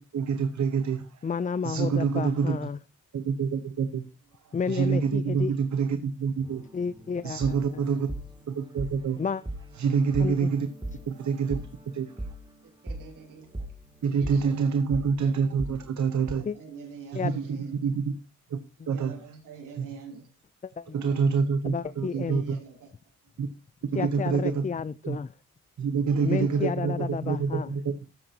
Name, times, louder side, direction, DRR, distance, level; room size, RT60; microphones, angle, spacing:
voice 1, 0.1-1.1 1.6-2.6 3.1-4.0 4.7-6.6 7.2-8.1 8.5-9.2 9.8-10.7 11.1-11.6 11.9-12.1 14.0-16.4 17.1-18.1 18.5-18.6 18.9-19.1 19.8-19.9 20.9-22.6 23.4-23.5 23.9-24.6 25.0-25.2 25.8-28.1, right 5 dB, 65° right, 1.0 m, -26 dB
voice 2, 1.2-2.8 4.5-5.5 6.7-7.6 9.2-9.4 10.2-10.5 16.5-16.6 17.1-17.4 20.6-21.0 21.6-22.4 23.9-25.3 26.2-27.7, left 6 dB, 25° left, 0.4 m, -31 dB
sound 1, 6.4-16.3, right 1 dB, 15° right, 2.6 m, -40 dB
voice 3, 12.6-13.7 14.2-14.4 14.9-15.3 16.0-17.7 18.9-20.2 20.8-21.5 22.2-22.9 26.0-26.6, right 5 dB, 85° right, 3.3 m, -46 dB
13.0 x 8.8 x 2.9 m
cardioid pair, 70°, 31 cm